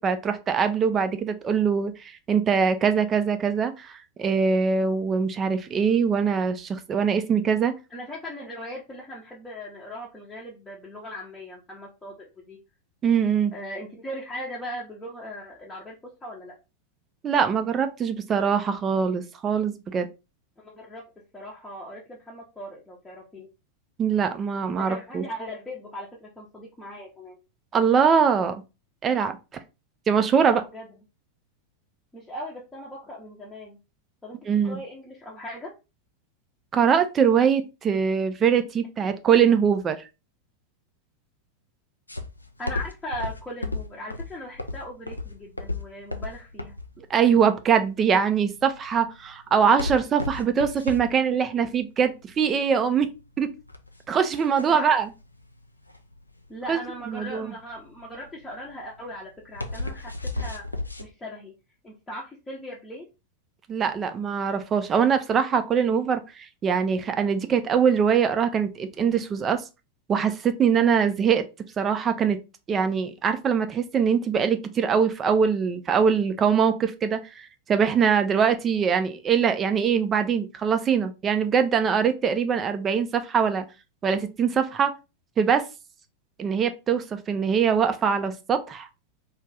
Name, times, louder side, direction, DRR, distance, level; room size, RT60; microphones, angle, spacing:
voice 1, 0.0-7.7 13.0-13.5 17.2-20.1 24.0-25.2 27.7-28.6 29.0-29.4 30.1-30.6 34.5-34.8 36.7-40.1 47.1-53.1 53.4-53.5 54.1-55.1 56.7-56.8 57.1-57.5 63.7-69.6 70.1-71.4 71.8-72.4 72.7-83.7 84.0-84.9 85.4-85.6 86.4-88.9, right 7 dB, 25° right, 0.4 m, -23 dB
voice 2, 7.9-12.6 13.5-16.0 16.2-16.6 20.6-21.0 21.3-23.5 24.8-27.4 30.4-30.9 32.1-33.8 34.2-35.7 39.0-39.1 42.6-46.7 54.7-55.0 56.5-60.6 61.0-61.5 61.8-63.1, equal, 10° left, 0.7 m, -39 dB
sound 1, 42.1-61.1, left 2 dB, 85° left, 0.3 m, -35 dB
2.5 x 2.3 x 3.2 m
figure-of-eight pair, 90°, 0 cm